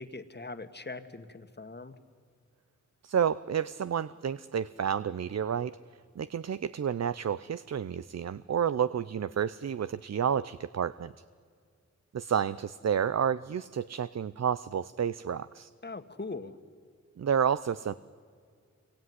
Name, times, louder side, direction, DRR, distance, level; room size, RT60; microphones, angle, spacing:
voice 1, 0.0-2.0 15.8-16.6, left 3 dB, 35° left, 9 dB, 1.9 m, -41 dB
voice 2, 3.0-5.8 6.2-11.1 12.1-15.7 17.2-17.9, right 8 dB, 60° right, 15 dB, 0.6 m, -30 dB
27.0 x 23.0 x 9.7 m, 2.1 s
cardioid pair, 55°, 30 cm